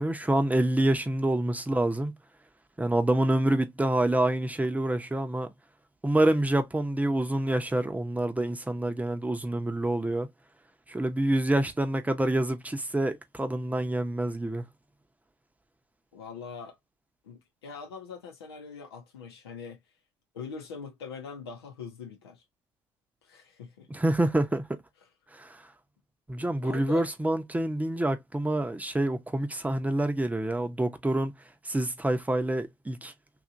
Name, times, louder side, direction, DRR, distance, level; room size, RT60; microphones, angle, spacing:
voice 1, 0.0-2.1 2.8-5.5 6.0-10.3 10.9-14.7 23.9-24.6 25.3-25.6 26.3-31.3 31.6-33.1, right 1 dB, 10° right, 0.8 m, -27 dB
voice 2, 16.1-16.8 17.2-19.8 20.3-22.4 23.2-23.9 26.6-27.1, left 5 dB, 85° left, 0.8 m, -42 dB
2.9 x 2.5 x 2.6 m
hypercardioid pair, 55°, 13 cm